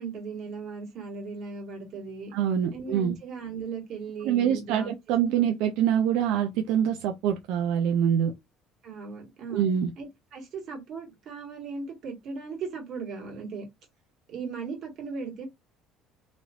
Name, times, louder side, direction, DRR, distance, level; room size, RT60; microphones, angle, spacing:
voice 1, 0.0-2.3 2.7-5.5 8.8-9.6 10.0-13.7 14.3-15.5, right 4 dB, 50° right, 1.9 m, -37 dB
voice 2, 2.3-3.2 4.2-8.3 9.5-9.9, right 9 dB, 80° right, 0.5 m, -25 dB
3.1 x 2.9 x 2.7 m
cardioid pair, 130°, 0 cm